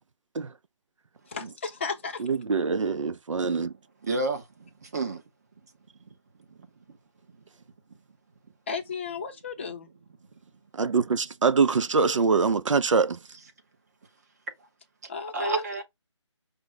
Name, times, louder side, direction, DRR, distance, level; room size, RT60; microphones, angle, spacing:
voice 1, 1.3-2.2 8.7-9.9 15.1-15.6, left 5 dB, 25° left, 0.5 m, -34 dB
voice 2, 2.2-3.7 10.8-13.2, right 5 dB, 90° right, 0.5 m, -24 dB
voice 3, 4.0-5.2 15.3-15.8, right 3 dB, 35° right, 0.7 m, -31 dB
5.1 x 2.1 x 4.5 m
figure-of-eight pair, 165°, 16 cm